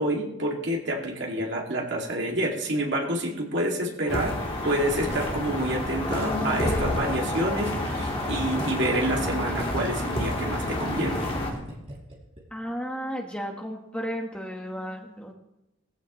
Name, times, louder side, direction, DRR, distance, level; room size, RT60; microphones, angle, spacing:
voice 1, 0.0-11.2, right 1 dB, 55° right, -1 dB, 2.4 m, -28 dB
sound 1, 4.1-11.5, left 1 dB, 25° left, 3.2 m, -29 dB
Gurgling, 4.8-12.7, right 1 dB, 30° right, 2.7 m, -42 dB
voice 2, 12.5-15.3, equal, 5° left, 1 dB, 1.3 m, -33 dB
19.5 x 15.0 x 3.1 m, 0.87 s
head